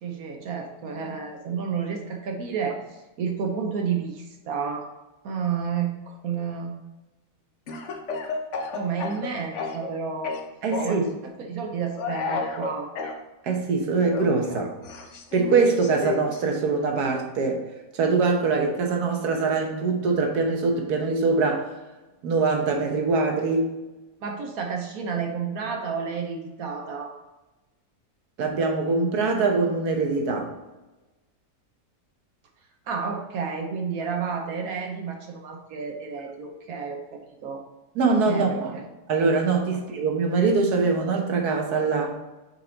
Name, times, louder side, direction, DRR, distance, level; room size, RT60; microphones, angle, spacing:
voice 1, 0.0-4.9 5.2-6.8 8.7-10.4 10.8-12.9 24.2-27.1 32.9-37.6 38.3-38.8 39.7-39.8, right 6 dB, 70° right, 3 dB, 1.3 m, -31 dB
Speech / Cough, 7.7-9.9 10.2-11.1 12.0-13.2 14.1-16.4, left 4 dB, 55° left, 1.0 m, -31 dB
voice 2, 10.6-11.0 13.4-14.7 15.3-17.6 17.9-21.7 22.2-23.6 28.4-30.5 38.0-38.7 39.1-42.2, right 4 dB, 90° right, 3 dB, 1.6 m, -23 dB
6.1 x 4.7 x 3.9 m, 1.1 s
omnidirectional pair, 1.6 m